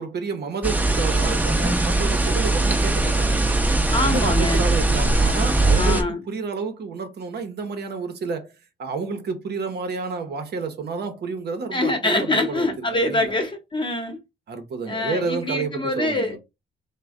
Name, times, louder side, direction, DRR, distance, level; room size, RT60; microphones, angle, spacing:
voice 1, 0.0-3.4 4.0-8.5 8.8-13.3 14.5-16.4, right 4 dB, 55° right, 0.9 m, -30 dB
sound 1, 0.6-6.0, right 2 dB, 10° right, 0.8 m, -20 dB
voice 2, 3.9-4.6 5.7-6.2 11.7-14.2 14.9-16.4, left 2 dB, 25° left, 1.0 m, -24 dB
3.1 x 2.2 x 3.6 m
cardioid pair, 90°, 20 cm